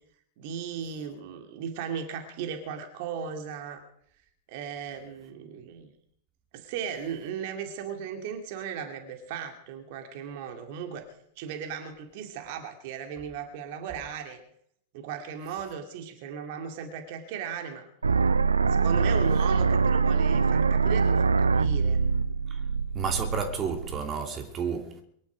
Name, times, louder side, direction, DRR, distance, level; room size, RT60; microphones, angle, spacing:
voice 1, 0.4-3.8 4.5-5.9 6.5-14.4 14.9-17.9 18.7-22.0, right 7 dB, 50° right, 2.5 m, -37 dB
sound 1, 18.0-24.0, right 5 dB, 75° right, 0.5 m, -24 dB
voice 2, 22.9-25.0, right 6 dB, 25° right, 2.6 m, -31 dB
23.0 x 11.5 x 5.1 m
figure-of-eight pair, 90°, 0 cm